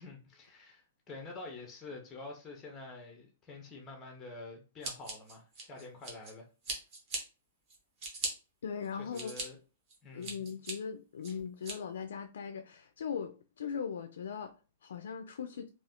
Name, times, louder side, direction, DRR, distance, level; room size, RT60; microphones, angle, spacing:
voice 1, 0.0-6.5 9.0-9.6 10.0-10.4, left 3 dB, 10° left, 0.5 m, -47 dB
Scissors, 4.8-6.3 6.6-7.2 7.7-8.3 8.8-9.4 9.9-10.7 11.2-11.7, right 3 dB, 25° right, 0.8 m, -39 dB
voice 2, 8.6-9.4 10.1-15.7, left 7 dB, 85° left, 0.3 m, -39 dB
2.4 x 2.4 x 3.5 m
hypercardioid pair, 180°, 0 cm